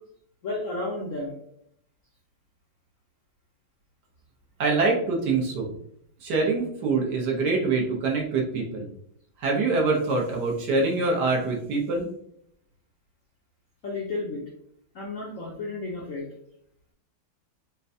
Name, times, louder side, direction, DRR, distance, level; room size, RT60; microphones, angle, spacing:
voice 1, 0.4-1.4 13.8-14.4 14.9-16.3, left 2 dB, 60° left, -3 dB, 0.8 m, -32 dB
voice 2, 4.6-5.8 6.2-8.9 9.4-12.1, right 3 dB, 65° right, -1 dB, 1.4 m, -25 dB
6.5 x 2.2 x 2.6 m, 0.71 s
omnidirectional pair, 2.1 m